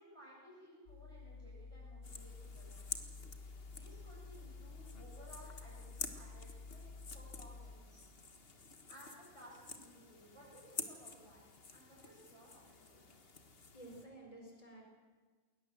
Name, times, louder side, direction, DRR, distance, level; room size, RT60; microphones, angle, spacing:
voice 1, 0.0-3.0 3.7-6.9 7.1-8.0 8.9-11.4 11.7-13.2, equal, 25° right, -6 dB, 7.8 m, -59 dB
sound 1, 0.9-7.8, left 4 dB, 85° left, 1.8 m, -51 dB
sound 2, 2.0-14.1, left 4 dB, 60° left, 1.7 m, -50 dB
voice 2, 13.1-14.8, right 1 dB, 30° left, 0 dB, 5.0 m, -54 dB
21.0 x 19.5 x 7.6 m, 1.4 s
omnidirectional pair, 1.2 m